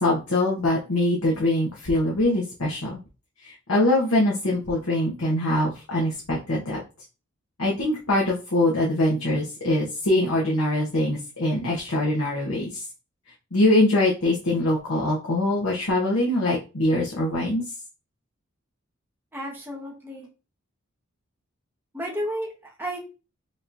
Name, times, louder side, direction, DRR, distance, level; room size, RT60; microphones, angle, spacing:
voice 1, 0.0-3.0 3.4-6.8 7.6-12.8 13.5-17.6, left 1 dB, 70° left, -4 dB, 1.2 m, -23 dB
voice 2, 19.3-20.3 21.9-23.0, equal, 10° right, -2 dB, 1.2 m, -32 dB
5.1 x 3.0 x 2.7 m, 0.31 s
head